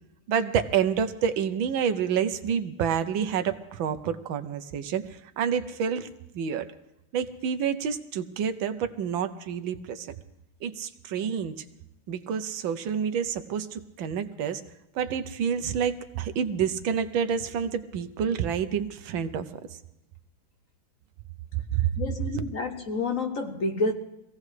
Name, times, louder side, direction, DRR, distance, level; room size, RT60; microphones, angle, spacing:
voice 1, 0.3-6.1 6.3-6.7 7.1-10.2 10.6-11.6 12.1-14.6 14.9-19.5 21.5-21.9, right 7 dB, 75° right, 1.5 m, -28 dB
voice 2, 22.0-23.9, left 3 dB, 50° left, 1.1 m, -29 dB
24.5 x 16.5 x 3.3 m
omnidirectional pair, 2.2 m